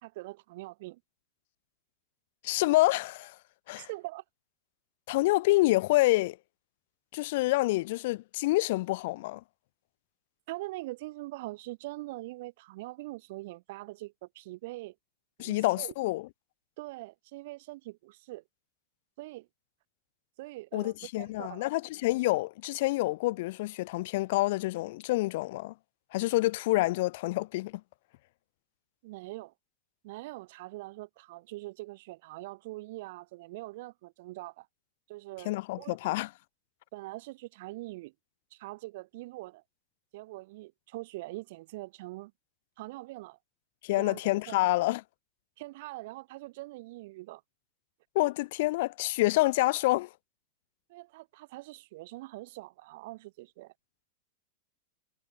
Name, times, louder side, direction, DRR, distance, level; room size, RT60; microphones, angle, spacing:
voice 1, 0.0-1.0 3.8-4.2 10.5-14.9 15.4-15.9 16.8-18.4 19.2-19.5 20.4-21.7 29.0-29.5 30.0-34.7 35.1-36.1 36.9-38.1 38.5-39.6 40.1-42.3 42.8-43.4 43.9-44.2 44.5-44.6 45.6-47.4 50.9-53.7, right 20 dB, 50° right, 0.6 m, -43 dB
voice 2, 2.4-3.4 3.7-3.9 5.1-6.4 7.1-9.4 15.4-16.3 20.7-25.7 26.1-27.8 35.5-36.3 43.8-45.0 48.2-50.1, left 19 dB, 50° left, 0.3 m, -27 dB
figure-of-eight pair, 90°, 0 cm